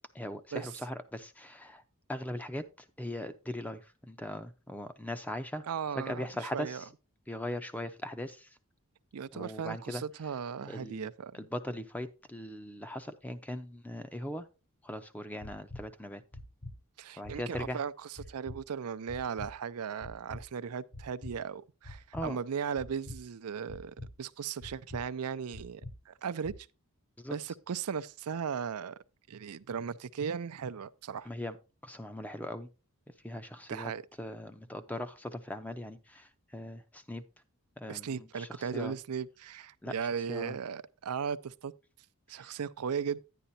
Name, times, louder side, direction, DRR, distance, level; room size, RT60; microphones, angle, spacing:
voice 1, 0.1-1.8 2.1-5.6 6.0-6.9 7.3-8.6 9.3-10.0 10.7-11.1 11.3-14.5 14.8-16.2 17.2-17.8 22.1-22.4 27.2-27.4 31.2-31.6 31.8-32.7 33.2-33.9 34.2-37.2 37.8-39.0 39.8-39.9 40.3-40.6 42.4-42.5, left 1 dB, 5° left, 0.6 m, -40 dB
voice 2, 5.7-6.8 9.1-11.3 17.0-17.9 18.3-26.5 27.3-28.9 29.3-31.3 33.7-34.0 37.9-41.7 42.3-43.2, right 6 dB, 90° right, 0.5 m, -37 dB
sound 1, 15.4-15.8 16.3-16.7 17.2-17.7 18.2-18.6 19.1-19.5 20.0-20.4 20.9-21.3 21.8-22.3 22.8-23.2 23.7-24.1 24.6-25.0 25.5-25.9 26.4-26.5, left 1 dB, 60° left, 4.6 m, -44 dB
10.0 x 10.0 x 2.7 m
head